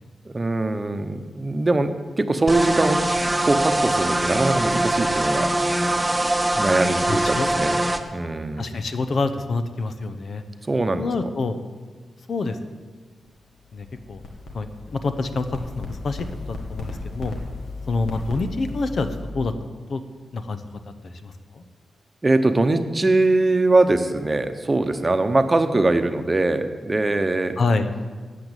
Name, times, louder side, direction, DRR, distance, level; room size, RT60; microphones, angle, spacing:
voice 1, 0.2-3.0 3.4-5.5 5.8-5.9 6.5-7.8 8.1-8.6 10.7-11.0 22.2-27.6, right 2 dB, 30° right, 9 dB, 1.0 m, -22 dB
sound 1, 2.5-8.0, right 1 dB, 15° right, 1.0 m, -22 dB
voice 2, 7.1-7.5 8.6-10.4 11.0-11.6 12.3-12.6 13.7-14.2 14.5-17.3 17.9-19.1 19.3-19.5 19.9-20.0 20.3-20.6 21.0-21.6 27.6-27.9, left 3 dB, 65° left, 9 dB, 0.9 m, -27 dB
sound 2, 13.2-19.2, left 3 dB, 80° left, 1.7 m, -36 dB
8.5 x 7.9 x 9.0 m, 1.5 s
supercardioid pair, 45°, 0 cm